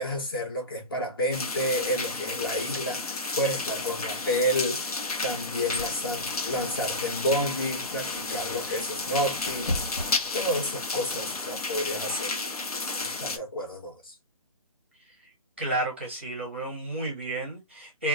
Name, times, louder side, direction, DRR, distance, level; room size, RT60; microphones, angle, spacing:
voice 1, 0.0-4.9 5.2-9.8 10.3-12.4 12.8-14.1, equal, 40° left, 1.2 m, -30 dB
sound 1, 1.3-13.4, left 3 dB, 90° left, 0.8 m, -32 dB
sound 2, 5.0-10.7, left 1 dB, 70° left, 1.5 m, -39 dB
sound 3, 6.1-11.5, right 1 dB, 5° left, 1.4 m, -48 dB
voice 2, 15.6-18.1, right 2 dB, 20° right, 0.7 m, -31 dB
2.8 x 2.2 x 3.7 m
hypercardioid pair, 175°, 19 cm